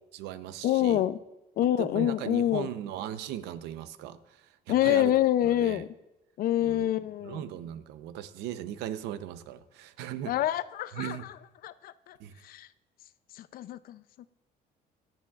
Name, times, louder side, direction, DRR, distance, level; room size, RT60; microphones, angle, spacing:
voice 1, 0.1-1.0 1.8-5.1 5.4-5.8 6.6-6.9 7.2-10.3 10.9-11.2 12.2-12.3, right 11 dB, 90° right, 12 dB, 0.7 m, -38 dB
voice 2, 0.6-1.2 1.6-2.7 4.7-5.9 6.4-7.4 10.3-11.2 11.6-12.2 12.4-12.7 13.4-14.0, left 12 dB, 60° left, 15 dB, 0.5 m, -26 dB
23.5 x 8.9 x 2.4 m, 0.94 s
cardioid pair, 110°, 17 cm